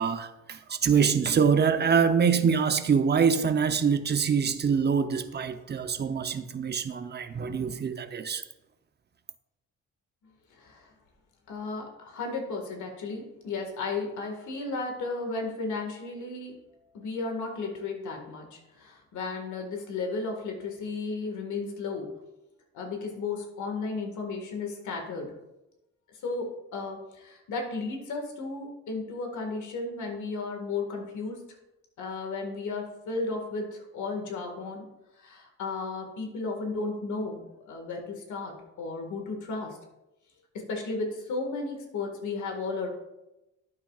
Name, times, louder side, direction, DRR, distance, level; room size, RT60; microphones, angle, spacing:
voice 1, 0.0-8.4, right 6 dB, 35° right, 9 dB, 0.8 m, -25 dB
voice 2, 10.5-10.9 11.5-16.5 16.9-22.1 22.7-25.3 26.2-31.4 32.0-34.9 35.2-39.8 40.5-42.9, left 3 dB, 75° left, 3 dB, 1.9 m, -34 dB
11.5 x 8.7 x 2.4 m, 0.94 s
cardioid pair, 90°, 30 cm